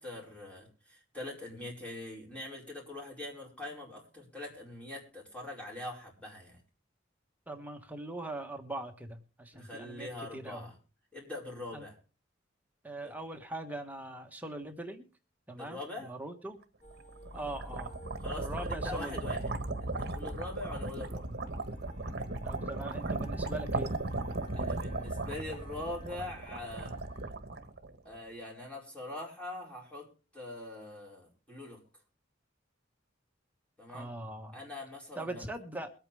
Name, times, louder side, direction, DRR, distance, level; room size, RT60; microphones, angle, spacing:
voice 1, 0.0-6.6 9.5-10.7 11.1-11.9 13.0-13.1 15.6-16.1 18.2-19.5 19.8-21.3 24.5-27.0 28.0-31.8 33.8-34.1 34.5-35.5, left 2 dB, 5° left, -2 dB, 4.8 m, -43 dB
voice 2, 7.5-10.6 11.7-11.8 12.8-15.1 15.5-16.6 17.3-18.0 18.4-19.2 22.4-23.9 33.9-34.6 35.2-35.9, right 1 dB, 10° right, 4 dB, 1.4 m, -41 dB
sound 1, 16.8-27.3, equal, 45° left, 7.6 m, -48 dB
sound 2, 17.0-28.2, right 2 dB, 55° right, 1.3 m, -37 dB
22.5 x 8.9 x 3.4 m, 0.34 s
head